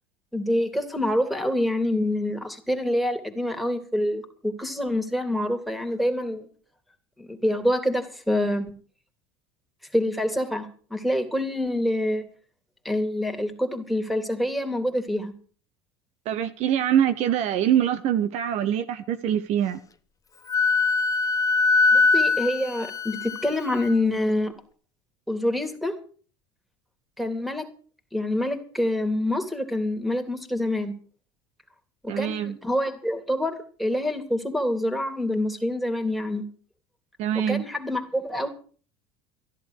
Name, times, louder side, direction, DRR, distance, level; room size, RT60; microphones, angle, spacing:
voice 1, 0.3-6.5 7.2-8.7 9.9-12.2 12.8-15.3 21.9-24.5 25.3-25.9 27.2-27.7 28.1-30.9 32.0-36.4 37.3-38.5, left 1 dB, ahead, 3.1 m, -26 dB
voice 2, 16.2-19.8 32.1-32.6 37.2-37.7, right 10 dB, 55° right, 1.2 m, -24 dB
Wind instrument woodwind instrument, 20.5-23.9, left 4 dB, 25° left, 1.1 m, -22 dB
14.5 x 11.0 x 6.5 m
hypercardioid pair, 80°, 13 cm